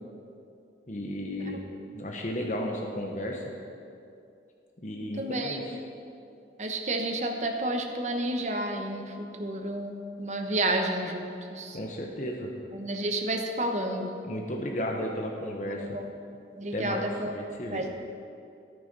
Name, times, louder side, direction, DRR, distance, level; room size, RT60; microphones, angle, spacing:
voice 1, 0.9-1.6 1.9-3.4 4.8-5.8 11.7-12.5 14.2-16.0 16.7-17.9, left 1 dB, 45° left, 0 dB, 1.0 m, -34 dB
voice 2, 5.2-5.6 6.6-11.8 12.7-14.1 15.8-16.0 16.6-17.3 17.7-17.9, right 1 dB, 40° right, 3 dB, 1.0 m, -30 dB
12.0 x 9.3 x 5.3 m, 2.6 s
head